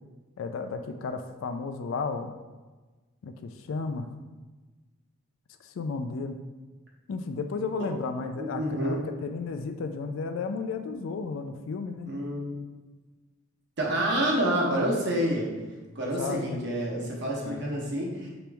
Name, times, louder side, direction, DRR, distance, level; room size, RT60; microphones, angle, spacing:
voice 1, 0.4-2.3 3.2-4.1 5.6-6.4 7.1-12.1 16.2-16.6 17.4-18.0, left 4 dB, 70° left, 7 dB, 0.3 m, -33 dB
voice 2, 8.3-9.0 12.1-12.6 13.8-15.5 15.9-18.3, right 1 dB, 55° right, -3 dB, 1.0 m, -28 dB
5.0 x 3.0 x 3.4 m, 1.3 s
head